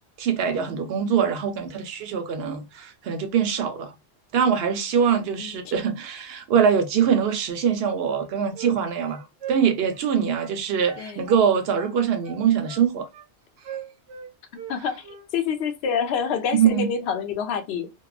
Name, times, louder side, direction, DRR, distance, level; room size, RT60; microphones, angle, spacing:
voice 1, 0.2-3.9 4.3-13.1 16.5-16.9, right 7 dB, 65° right, 0.8 m, -23 dB
sound 1, 8.0-8.8 9.0-10.6 10.8-12.0 12.2-13.3 13.6-14.8 15.0-15.3, right 9 dB, 90° right, 1.0 m, -40 dB
voice 2, 14.5-15.1 15.3-17.9, left 7 dB, 70° left, 0.8 m, -27 dB
2.7 x 2.2 x 2.3 m
omnidirectional pair, 1.2 m